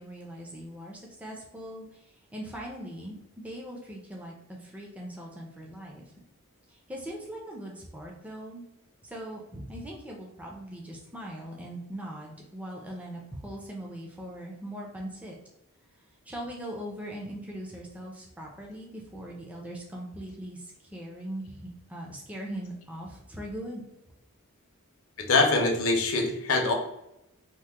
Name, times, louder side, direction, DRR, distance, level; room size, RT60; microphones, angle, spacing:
voice 1, 0.0-6.0 6.7-8.6 9.0-15.4 16.3-23.8, right 1 dB, 5° right, -2 dB, 0.4 m, -40 dB
voice 2, 25.3-26.7, left 3 dB, 70° left, 3 dB, 0.6 m, -23 dB
2.9 x 2.0 x 3.3 m, 0.86 s
head